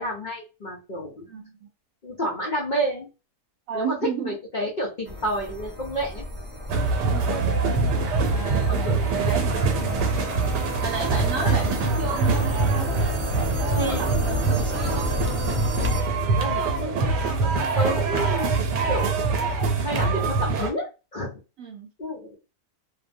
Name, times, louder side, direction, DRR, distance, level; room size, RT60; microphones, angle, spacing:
voice 1, 0.0-1.3 2.0-3.1 3.7-4.0 4.2-6.3 8.7-9.2 11.4-11.6 13.7-14.1 16.3-17.1 17.4-21.3 22.0-22.4, equal, 75° left, -3 dB, 0.4 m, -30 dB
voice 2, 1.3-1.7 3.7-4.3 7.1-7.6 8.2-9.5 9.8-10.1 10.8-12.9 13.3-15.1 21.6-21.9, right 5 dB, 70° right, 1 dB, 0.8 m, -33 dB
sound 1, 5.1-16.0, equal, 10° right, 0.6 m, -32 dB
sound 2, 6.7-20.7, right 4 dB, 90° right, 1.2 m, -24 dB
2.7 x 2.0 x 2.6 m, 0.29 s
omnidirectional pair, 1.8 m